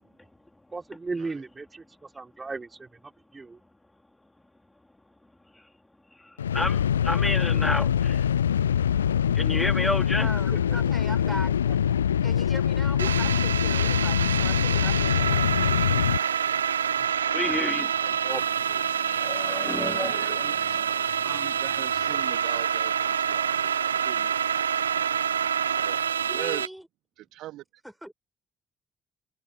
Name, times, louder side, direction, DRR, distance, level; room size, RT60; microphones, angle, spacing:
voice 1, 0.7-3.6 11.2-11.3 13.0-13.1 18.0-18.4 18.7-18.8 20.0-20.1, right 3 dB, 25° right, 5.7 m, -37 dB
voice 2, 6.2-8.3 9.3-10.3 17.3-18.2 18.9-21.3, left 2 dB, 15° left, 3.9 m, -31 dB
sound 1, 6.4-16.2, left 9 dB, 80° left, 0.6 m, -24 dB
voice 3, 10.2-11.5 12.2-16.0 26.3-26.9 27.8-28.1, equal, 5° right, 7.0 m, -40 dB
sound 2, 13.0-26.7, right 8 dB, 80° right, 0.3 m, -27 dB
voice 4, 19.5-20.8 21.2-24.3 25.8-26.7 27.2-27.6, right 15 dB, 60° right, 2.1 m, -40 dB
figure-of-eight pair, 45°, 0 cm